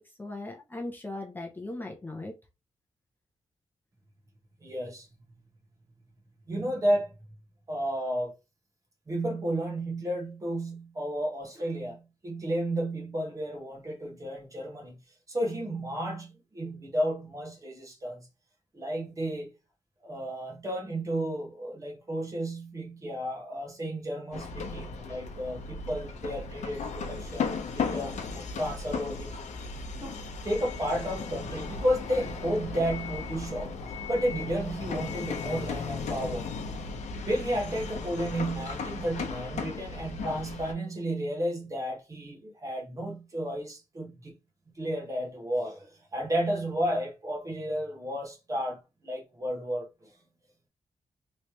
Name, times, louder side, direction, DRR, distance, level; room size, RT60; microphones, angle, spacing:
voice 1, 0.0-2.3, left 2 dB, 15° left, 0.6 m, -38 dB
voice 2, 4.6-5.1 6.5-7.1 7.7-8.3 9.1-15.0 15.3-18.3 18.7-19.5 20.0-29.4 30.0-30.2 30.4-33.7 34.1-36.5 37.3-44.4 44.8-50.1, right 1 dB, 25° right, 1.2 m, -32 dB
sound 1, 24.3-40.7, left 4 dB, 75° left, 0.7 m, -36 dB
3.2 x 3.2 x 2.8 m
wide cardioid pair, 175°, 12 cm